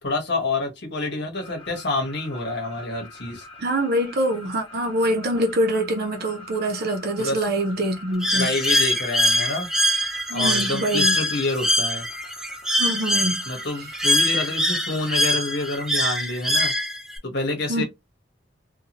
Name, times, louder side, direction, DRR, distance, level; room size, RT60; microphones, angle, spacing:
voice 1, 0.0-3.5 7.2-7.4 8.3-9.7 10.3-12.1 13.5-16.7 17.2-17.8, left 2 dB, 65° left, 1.0 m, -27 dB
sound 1, 1.3-15.9, left 1 dB, 30° left, 1.0 m, -43 dB
voice 2, 3.6-8.5 10.3-11.1 12.8-13.4 13.7-13.9 17.7-17.8, right 1 dB, 55° right, 0.6 m, -24 dB
Bird, 8.2-17.2, equal, 5° right, 0.4 m, -23 dB
2.7 x 2.2 x 2.8 m
head